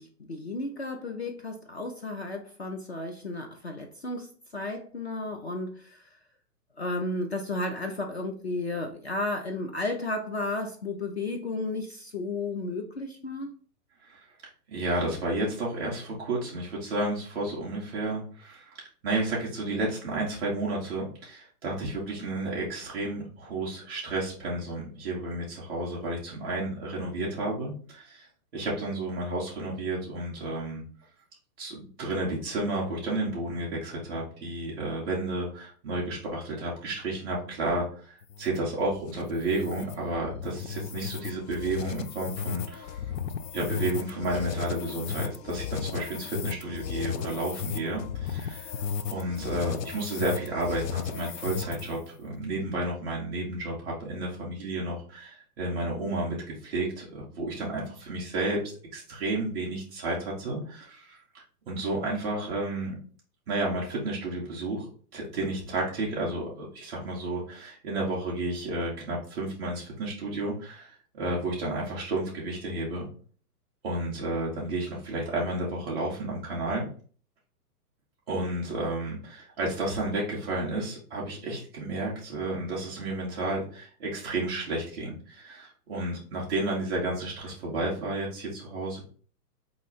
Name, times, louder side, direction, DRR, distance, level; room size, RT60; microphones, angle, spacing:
voice 1, 0.0-6.2 6.8-13.6, left 2 dB, 45° left, 4 dB, 0.5 m, -33 dB
voice 2, 14.7-28.3 28.5-30.8 31.6-43.0 43.5-48.7 49.1-58.6 58.9-62.9 63.5-64.9 65.1-73.1 73.8-76.8 78.3-89.0, right 2 dB, 5° right, -5 dB, 0.5 m, -32 dB
sound 1, 38.2-52.1, left 7 dB, 80° left, 0.7 m, -35 dB
4.3 x 2.8 x 4.1 m, 0.42 s
hypercardioid pair, 175°, 48 cm